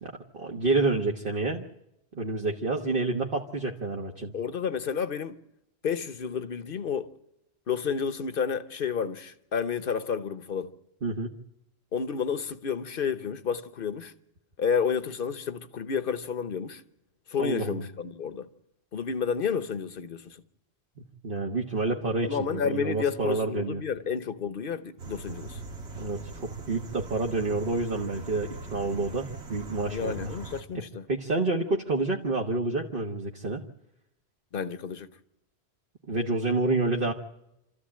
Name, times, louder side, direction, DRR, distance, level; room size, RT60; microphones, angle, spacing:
voice 1, 0.0-1.6 2.1-4.3 11.0-11.3 17.4-17.8 21.0-23.8 25.9-30.3 30.7-30.8 31.1-33.6 36.1-37.1, right 3 dB, 60° right, 1.5 m, -29 dB
voice 2, 4.3-5.4 5.8-7.1 7.7-10.7 11.9-14.1 14.6-16.8 17.3-18.5 18.9-20.4 22.2-25.6 29.9-31.0 34.5-35.1, left 6 dB, 60° left, 1.2 m, -30 dB
sound 1, 25.0-30.6, right 3 dB, 85° right, 2.0 m, -41 dB
27.0 x 14.0 x 8.7 m
omnidirectional pair, 1.1 m